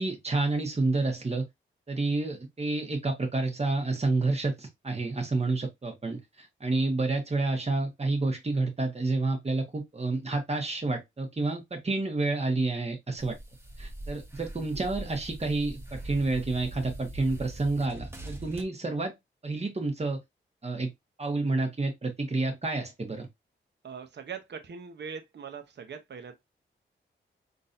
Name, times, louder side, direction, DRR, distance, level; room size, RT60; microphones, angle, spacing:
voice 1, 0.0-1.5 1.9-13.4 13.8-19.1 19.4-20.2 20.6-20.9 21.2-23.3, right 3 dB, 30° right, 1.4 m, -29 dB
sound 1, 13.2-18.6, right 1 dB, 10° right, 1.0 m, -42 dB
voice 2, 23.8-26.3, right 6 dB, 60° right, 0.8 m, -41 dB
3.8 x 2.6 x 2.6 m
cardioid pair, 50°, 21 cm